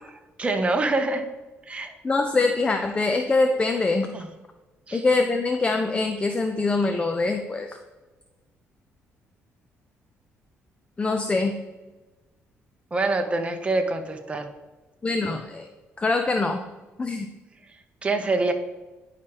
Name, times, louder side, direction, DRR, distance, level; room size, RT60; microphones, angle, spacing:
voice 1, 0.4-1.2 1.7-1.9 4.1-4.3 4.9-5.0 12.9-14.5 18.0-18.5, right 2 dB, 25° right, 5 dB, 0.8 m, -25 dB
voice 2, 2.0-4.1 4.9-7.8 11.0-11.5 15.0-15.7 16.0-16.6 17.0-17.3, left 3 dB, 25° left, 6 dB, 0.5 m, -24 dB
10.5 x 4.9 x 3.0 m, 1.2 s
cardioid pair, 100°, 5 cm